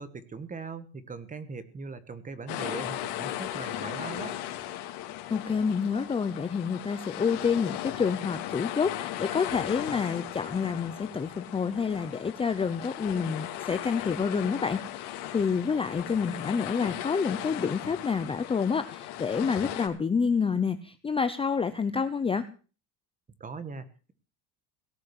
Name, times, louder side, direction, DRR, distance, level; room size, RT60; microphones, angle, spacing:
voice 1, 0.0-4.4 23.4-24.1, right 4 dB, 20° right, 13 dB, 1.6 m, -40 dB
sound 1, 2.5-19.9, left 13 dB, 65° left, 2.9 m, -37 dB
voice 2, 5.3-22.4, left 5 dB, 15° left, 11 dB, 0.6 m, -28 dB
18.0 x 6.3 x 9.7 m, 0.38 s
cardioid pair, 145°, 42 cm